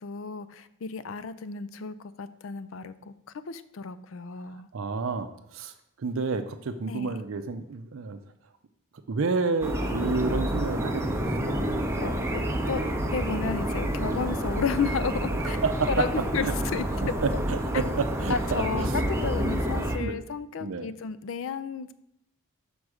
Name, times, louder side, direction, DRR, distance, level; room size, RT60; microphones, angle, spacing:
voice 1, 0.0-3.1 3.5-4.7 6.9-7.1 12.0-12.8 13.1-15.6 15.9-16.9 17.7-17.8 18.3-21.9, left 5 dB, 65° left, 14 dB, 0.4 m, -32 dB
voice 2, 4.7-5.7 6.0-8.2 9.1-11.5 15.4-16.5 17.0-19.0 20.0-20.2 20.6-20.9, right 4 dB, 70° right, 8 dB, 0.5 m, -30 dB
sound 1, 9.6-20.0, right 1 dB, 15° right, 0.7 m, -28 dB
6.3 x 5.3 x 4.8 m, 0.77 s
head